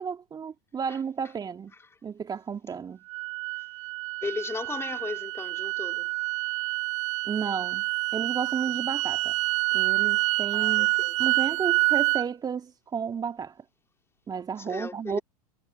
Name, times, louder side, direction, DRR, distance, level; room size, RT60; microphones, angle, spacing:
voice 1, 0.0-1.7 2.0-3.0 7.2-7.8 8.1-9.3 9.7-10.9 11.2-13.5 14.3-15.2, right 6 dB, 20° right, 3.3 m, -32 dB
sound 1, 3.1-12.3, right 24 dB, 50° right, 2.4 m, -27 dB
voice 2, 4.2-6.1 10.5-11.2 14.7-15.2, left 4 dB, 10° left, 3.7 m, -36 dB
figure-of-eight pair, 90°, 20 cm